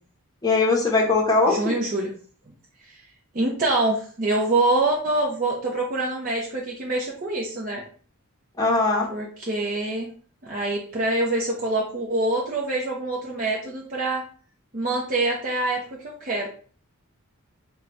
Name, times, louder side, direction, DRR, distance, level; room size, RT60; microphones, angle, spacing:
voice 1, 0.4-1.8 8.6-9.1, left 3 dB, 20° left, -1 dB, 0.9 m, -20 dB
voice 2, 1.5-2.1 2.9-3.0 3.3-7.8 9.1-10.1 10.4-14.3 14.7-15.8 16.0-16.5, right 2 dB, 40° right, -3 dB, 0.7 m, -25 dB
3.8 x 2.3 x 4.4 m, 0.42 s
head